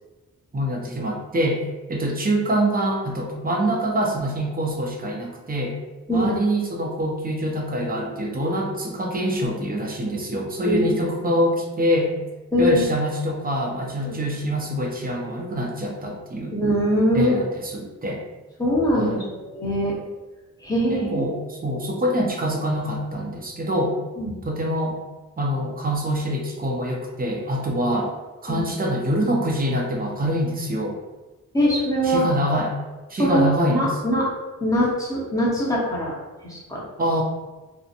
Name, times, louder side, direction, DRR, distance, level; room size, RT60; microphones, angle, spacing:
voice 1, 0.5-1.6 1.9-5.8 6.1-12.2 12.6-16.6 17.1-18.2 19.0-19.3 20.9-24.0 24.4-25.0 25.4-28.1 28.4-31.0 32.0-32.8 33.1-33.9 37.0-37.2, equal, 25° right, 0 dB, 0.5 m, -25 dB
voice 2, 6.1-6.4 10.6-11.0 12.5-12.9 14.0-14.2 16.5-17.3 18.6-19.9 20.6-21.3 24.2-24.3 28.5-28.6 31.5-32.3 33.2-34.3 34.6-36.1 36.4-36.8, equal, 10° left, -6 dB, 0.9 m, -22 dB
2.8 x 2.1 x 2.5 m, 1.2 s
cardioid pair, 75°, 35 cm